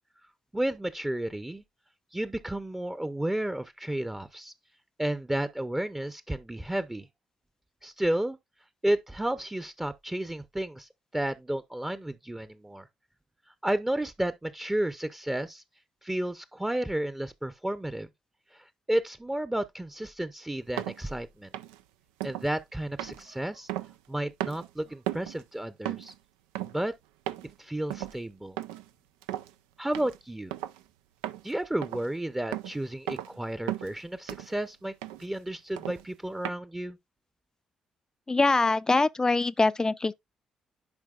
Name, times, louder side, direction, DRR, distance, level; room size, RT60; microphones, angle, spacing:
voice 1, 0.5-1.6 2.1-4.5 5.0-7.1 7.8-8.4 8.8-12.9 13.6-15.6 16.0-18.1 18.5-21.5 22.2-23.7 24.1-26.1 26.6-26.9 27.6-28.6 29.8-30.5 31.4-34.9 35.2-37.0, right 1 dB, 10° right, 0.7 m, -32 dB
sound 1, 20.8-21.0 21.5-21.8 22.2-22.5 23.0-24.1 24.4-24.7 25.1-25.4 25.8-26.1 26.5-26.8 27.3-27.5 27.9-28.2 28.6-28.9 29.2-29.5 29.9-30.2 30.5-30.8 31.2-31.5 31.8-32.1 32.5-32.8 33.1-33.4 33.7-34.0 34.3-34.6 35.0-35.3 35.8-36.0 36.4-36.5, right 13 dB, 80° right, 0.4 m, -35 dB
voice 2, 38.3-40.1, left 3 dB, 25° left, 0.5 m, -23 dB
10.5 x 4.7 x 2.4 m
hypercardioid pair, 40°, 2 cm